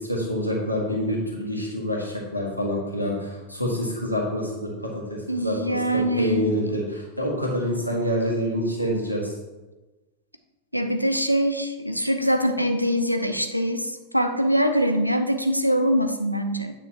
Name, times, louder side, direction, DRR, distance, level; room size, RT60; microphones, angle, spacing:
voice 1, 0.0-9.3, equal, 90° left, -3 dB, 1.6 m, -27 dB
voice 2, 5.3-6.8 10.7-16.7, equal, 90° right, 6 dB, 0.6 m, -23 dB
9.0 x 5.7 x 3.0 m, 1.1 s
figure-of-eight pair, 90°, 0 cm